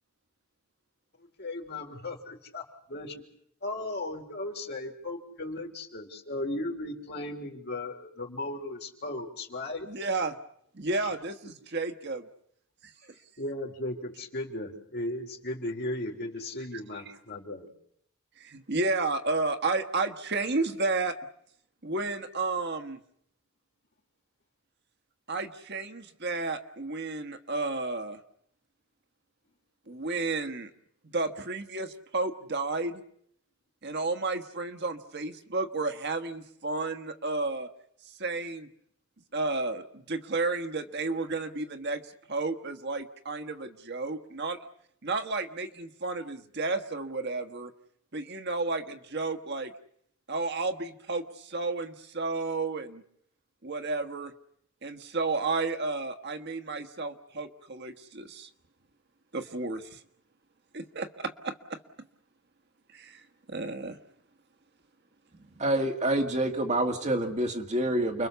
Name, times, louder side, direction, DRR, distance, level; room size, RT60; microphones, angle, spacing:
voice 1, 1.2-3.2 3.6-9.9 10.9-11.1 13.4-17.7, left 2 dB, 50° left, 2 dB, 3.6 m, -36 dB
voice 2, 9.9-10.3 10.7-12.2 18.4-21.2 21.8-23.0 25.3-28.2 29.9-30.7 31.1-33.0 33.8-37.7 38.2-38.7 39.3-42.0 42.3-44.6 45.0-47.7 48.1-49.7 50.3-53.0 53.6-54.3 54.8-58.5 59.3-60.0 60.7-61.8 62.9-64.0, right 3 dB, 50° right, 8 dB, 1.4 m, -32 dB
voice 3, 65.6-68.3, right 1 dB, 30° right, 4 dB, 2.0 m, -27 dB
29.5 x 22.5 x 7.0 m, 0.70 s
head